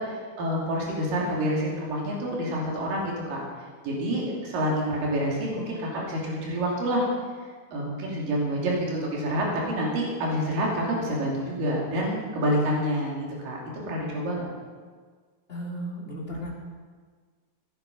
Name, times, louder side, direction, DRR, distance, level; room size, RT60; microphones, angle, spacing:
voice 1, 0.0-3.4 3.8-7.1 7.7-13.2 13.4-13.6 13.9-14.5, equal, 60° right, -3 dB, 4.5 m, -27 dB
voice 2, 15.5-16.5, equal, 15° left, -4 dB, 2.8 m, -35 dB
17.0 x 10.5 x 5.4 m, 1.5 s
omnidirectional pair, 4.4 m